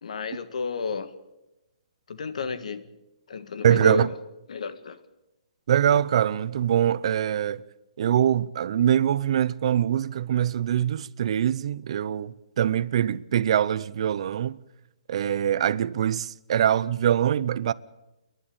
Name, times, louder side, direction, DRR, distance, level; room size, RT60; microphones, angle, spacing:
voice 1, 0.0-1.1 2.1-2.9 3.3-4.1 4.5-5.0, left 5 dB, 70° left, 1.7 m, -31 dB
voice 2, 3.6-4.1 5.7-7.6 8.0-14.6 15.1-17.7, right 10 dB, 55° right, 0.7 m, -23 dB
28.5 x 11.5 x 8.6 m
hypercardioid pair, 155°, 4 cm